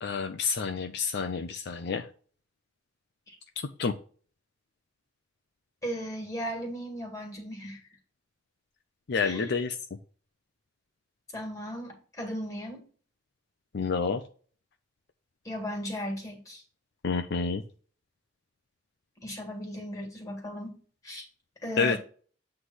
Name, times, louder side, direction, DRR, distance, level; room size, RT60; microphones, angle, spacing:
voice 1, 0.0-2.1 3.8-3.9 9.1-9.7 13.7-14.2 17.0-17.6 21.8-22.0, left 5 dB, 60° left, 6 dB, 0.5 m, -28 dB
voice 2, 5.8-7.8 9.2-9.6 11.3-12.9 15.5-16.6 19.2-20.8 21.0-21.2 21.6-22.0, equal, 15° left, 2 dB, 2.0 m, -36 dB
8.1 x 3.3 x 5.5 m, 0.42 s
head